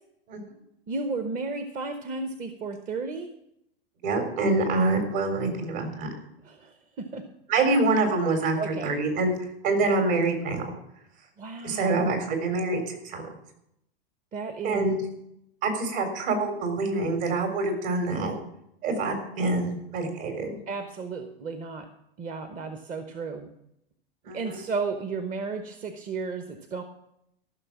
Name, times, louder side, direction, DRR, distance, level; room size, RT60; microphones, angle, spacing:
voice 1, 0.9-3.3 6.4-7.2 8.6-8.9 11.4-12.1 14.3-14.9 20.7-21.9 22.2-23.5 24.3-26.8, right 4 dB, 25° right, 7 dB, 1.0 m, -33 dB
voice 2, 4.0-6.1 7.5-9.3 9.6-10.7 11.6-13.2 14.6-15.0 15.6-18.4 18.8-20.6 24.3-24.6, right 3 dB, 55° right, 5 dB, 3.9 m, -26 dB
14.0 x 6.5 x 7.2 m, 0.78 s
hypercardioid pair, 120°, 31 cm